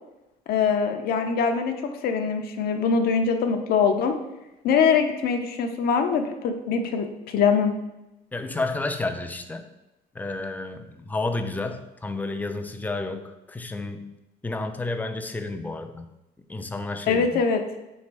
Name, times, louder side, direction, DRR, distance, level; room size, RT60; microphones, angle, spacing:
voice 1, 0.5-4.2 4.6-7.8 17.1-17.6, left 6 dB, 65° left, 5 dB, 0.5 m, -23 dB
voice 2, 8.3-9.7 10.1-14.1 14.4-16.1 16.5-17.4, left 2 dB, 10° left, 6 dB, 0.3 m, -31 dB
3.3 x 3.2 x 4.5 m, 0.96 s
cardioid pair, 110°, 17 cm